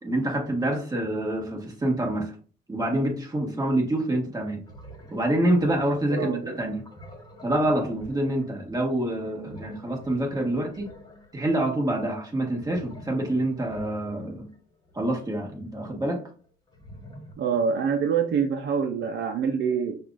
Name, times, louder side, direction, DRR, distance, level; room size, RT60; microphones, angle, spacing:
voice 1, 0.0-2.4 2.7-4.6 5.1-6.9 7.4-10.9 11.3-14.5 14.9-16.2, right 1 dB, 20° right, 0 dB, 1.5 m, -26 dB
sound 1, 4.0-4.1 4.5-15.1 16.4-17.3, equal, 20° left, 1.4 m, -47 dB
voice 2, 6.1-6.6 17.4-20.0, right 6 dB, 70° right, 6 dB, 0.6 m, -25 dB
5.9 x 2.5 x 2.5 m, 0.40 s
cardioid pair, 90°, 20 cm